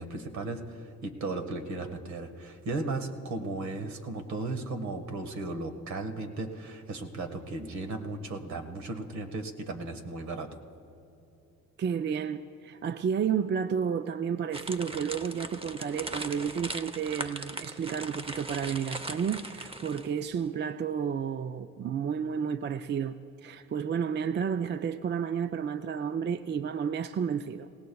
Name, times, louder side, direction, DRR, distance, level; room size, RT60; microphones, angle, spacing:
voice 1, 0.0-10.5, right 2 dB, 70° right, 1.6 m, -36 dB
voice 2, 11.8-27.7, right 7 dB, 35° right, 0.4 m, -31 dB
sound 1, 14.5-20.2, right 2 dB, 20° right, 0.8 m, -39 dB
26.5 x 17.5 x 2.3 m
cardioid pair, 90°, 30 cm